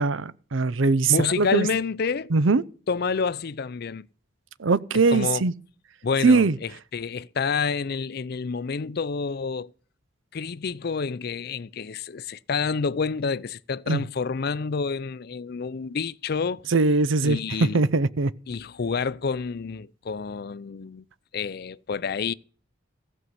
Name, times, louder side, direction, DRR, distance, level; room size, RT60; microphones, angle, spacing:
voice 1, 0.0-1.7 2.3-2.6 4.6-5.5 6.2-6.5 13.9-14.0 16.7-17.4 17.7-18.3, right 3 dB, 85° right, 0.6 m, -21 dB
voice 2, 1.1-2.3 2.9-4.1 5.1-5.4 6.0-9.7 10.3-16.7 17.2-17.8 18.5-21.0 21.3-22.3, left 5 dB, 55° left, 0.5 m, -28 dB
15.5 x 5.5 x 7.8 m
head